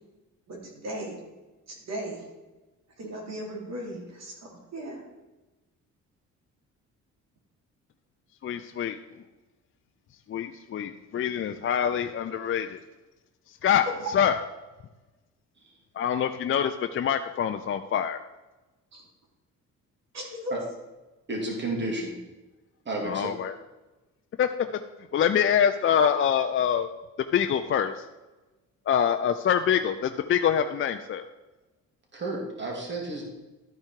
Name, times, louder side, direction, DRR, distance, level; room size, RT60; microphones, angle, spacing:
voice 1, 0.5-1.2 1.7-2.2 3.0-5.0 13.6-14.1 18.9-19.1 20.1-20.5, right 1 dB, 60° right, -1 dB, 2.9 m, -37 dB
voice 2, 8.4-9.0 10.3-12.8 13.6-13.9 14.1-14.4 16.0-18.2 23.0-23.5 24.4-24.5 25.1-26.9 27.3-28.0 28.9-31.3, left 8 dB, 45° left, 7 dB, 0.5 m, -25 dB
voice 3, 21.3-22.2 22.9-23.3 32.1-33.2, right 2 dB, 35° right, 0 dB, 2.4 m, -32 dB
12.0 x 4.7 x 4.5 m, 1.1 s
cardioid pair, 90°, 30 cm